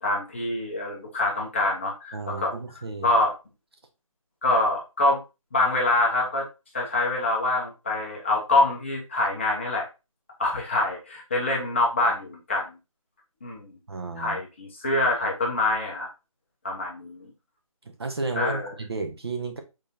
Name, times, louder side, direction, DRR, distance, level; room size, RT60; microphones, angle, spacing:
voice 1, 0.0-2.5 3.0-3.3 4.4-5.2 5.5-6.5 6.7-9.9 10.4-12.7 13.4-13.7 14.2-16.1 16.6-17.3 18.3-18.7, left 2 dB, 20° left, 0.9 m, -25 dB
voice 2, 2.1-3.1 13.9-14.4 18.0-19.6, right 3 dB, 45° right, 0.7 m, -32 dB
5.3 x 3.5 x 2.6 m
figure-of-eight pair, 175°, 18 cm